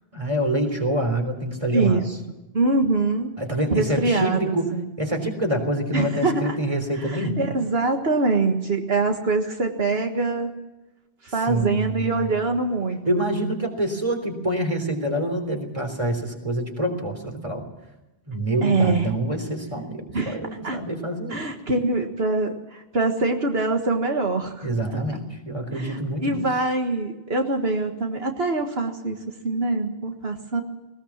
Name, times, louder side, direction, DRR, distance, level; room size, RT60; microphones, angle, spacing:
voice 1, 0.1-2.0 3.4-7.5 11.5-12.3 13.1-17.6 18.3-21.5 24.6-26.4, right 1 dB, 30° right, 5 dB, 3.7 m, -26 dB
voice 2, 1.7-2.2 2.5-3.3 3.7-4.9 5.9-6.6 6.9-10.5 11.2-13.2 18.6-19.1 20.1-20.8 21.3-25.0 25.7-29.2 29.4-30.6, right 3 dB, 75° right, 4 dB, 1.9 m, -24 dB
19.5 x 19.0 x 7.3 m, 1.0 s
omnidirectional pair, 1.0 m